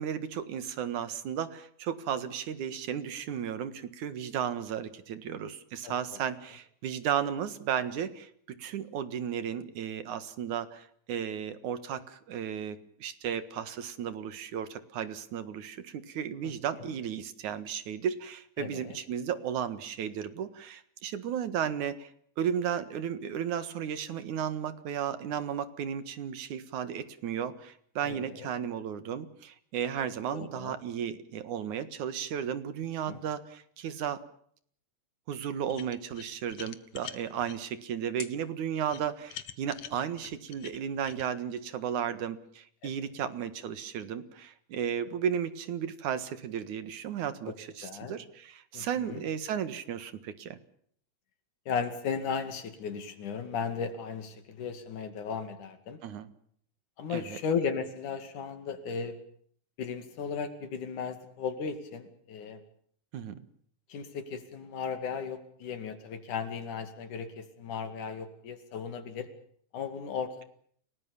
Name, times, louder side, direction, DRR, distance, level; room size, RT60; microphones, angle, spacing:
voice 1, 0.0-22.1 22.4-34.2 35.3-50.6 56.0-56.3 57.1-57.4 63.1-63.4, right 8 dB, 80° right, 12 dB, 3.1 m, -34 dB
voice 2, 18.6-19.0 28.0-28.5 30.3-30.7 33.1-33.2 42.8-42.9 43.2-43.3 47.5-47.6 47.8-48.2 48.7-49.2 51.7-56.0 57.0-59.2 59.8-62.6 63.9-69.3 69.7-70.4, left 6 dB, 85° left, 9 dB, 3.9 m, -36 dB
sound 1, 35.7-37.6 38.2-38.3 38.9-41.3, left 10 dB, 60° left, 2.1 m, -44 dB
29.5 x 19.0 x 7.1 m, 0.63 s
omnidirectional pair, 3.4 m